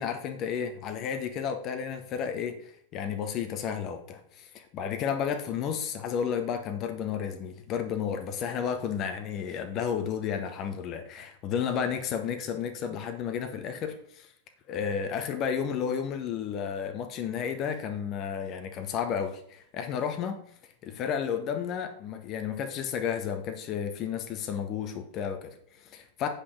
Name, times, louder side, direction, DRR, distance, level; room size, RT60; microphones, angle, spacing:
voice 1, 0.0-14.3 14.7-20.4 20.8-26.3, left 7 dB, 35° left, 7 dB, 1.0 m, -32 dB
8.2 x 5.7 x 6.0 m, 0.64 s
figure-of-eight pair, 90°, 0 cm